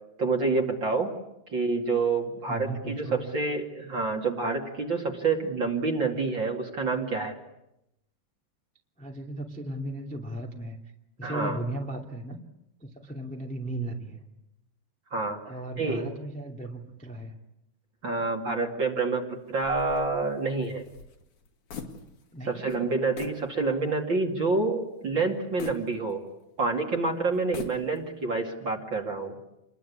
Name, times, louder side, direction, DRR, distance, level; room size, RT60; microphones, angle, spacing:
voice 1, 0.2-1.1 1.5-7.3 11.2-11.6 15.1-15.4 15.8-16.1 18.0-20.8 22.5-26.2 26.6-29.4, right 3 dB, 35° right, 2 dB, 2.6 m, -28 dB
voice 2, 2.5-3.3 9.0-10.8 11.2-12.4 12.8-14.2 15.4-17.3 22.3-22.8, right 1 dB, 5° left, 0 dB, 1.5 m, -36 dB
sound 1, 19.6-22.4 22.7-22.8 23.2-23.5 24.0-24.1 25.6-26.6 27.3-28.2, left 6 dB, 55° left, 3.5 m, -43 dB
28.0 x 22.0 x 8.5 m, 0.87 s
omnidirectional pair, 4.4 m